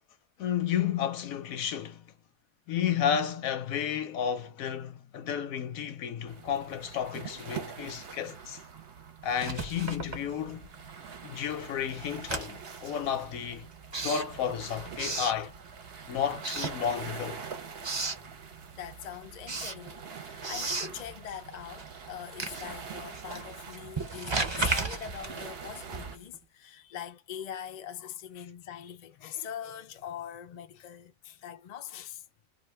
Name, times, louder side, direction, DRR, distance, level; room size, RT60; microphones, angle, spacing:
voice 1, 0.4-2.0 2.7-8.6 9.2-10.7 11.2-13.7 14.0-15.5 16.1-17.4, left 8 dB, 90° left, 1.1 m, -32 dB
sound 1, 6.3-26.2, right 6 dB, 55° right, 0.8 m, -45 dB
Writing, 9.3-10.9 11.2-16.0 16.3-17.3 17.6-18.3 18.7-26.4, right 3 dB, 30° right, 0.5 m, -36 dB
voice 2, 18.7-32.2, left 9 dB, 70° left, 0.4 m, -42 dB
2.5 x 2.4 x 3.2 m
omnidirectional pair, 1.4 m